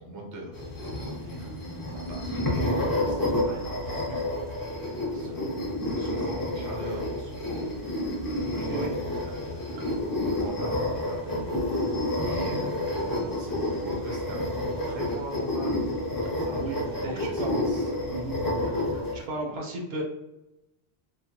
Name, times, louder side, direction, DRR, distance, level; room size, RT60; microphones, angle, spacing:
voice 1, 0.0-4.2 5.1-8.1 8.5-10.0 10.2-15.9 16.4-17.9 18.4-18.8, right 1 dB, 25° right, -2 dB, 0.5 m, -42 dB
sound 1, 0.5-19.2, left 1 dB, 20° left, 0.7 m, -29 dB
voice 2, 17.0-17.6 18.1-18.4 19.1-20.0, right 2 dB, 70° right, -1 dB, 0.9 m, -34 dB
3.1 x 2.1 x 2.8 m, 0.94 s
omnidirectional pair, 1.1 m